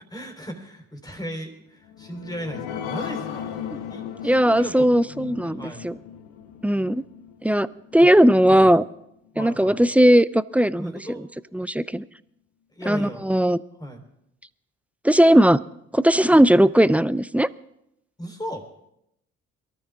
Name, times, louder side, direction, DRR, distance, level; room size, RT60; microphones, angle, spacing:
voice 1, 0.1-3.5 3.9-5.8 8.0-8.1 8.5-8.7 9.3-9.8 10.7-11.2 12.7-13.3 13.8-14.0 16.3-16.4 18.2-18.7, equal, 10° left, 4 dB, 3.9 m, -36 dB
sound 1, 1.8-8.9 9.4-9.5 9.8-9.9, left 8 dB, 85° left, 1.1 m, -37 dB
voice 2, 4.2-5.9 6.6-7.0 7.4-7.7 7.9-8.8 9.4-10.9 11.5-12.0 12.9-13.6 15.0-15.6 15.9-17.5, right 1 dB, 5° right, 18 dB, 0.5 m, -18 dB
22.5 x 13.5 x 3.6 m, 0.79 s
hypercardioid pair, 50°, 33 cm